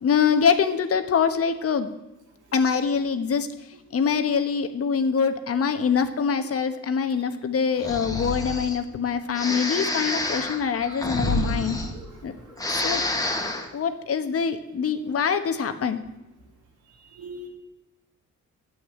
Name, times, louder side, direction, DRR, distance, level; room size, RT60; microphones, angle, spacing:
voice 1, 0.0-1.9 2.5-3.5 3.9-11.8 12.2-12.3 12.7-13.0 13.7-16.0, left 6 dB, 50° left, 9 dB, 1.2 m, -24 dB
Breathing, 7.8-8.8 9.3-12.3 12.5-13.7, left 1 dB, 10° left, 2.0 m, -28 dB
voice 2, 11.1-12.1 13.4-13.5 17.2-17.5, right 3 dB, 85° right, 0 dB, 3.4 m, -40 dB
11.0 x 8.5 x 9.3 m, 0.97 s
cardioid pair, 90°, 30 cm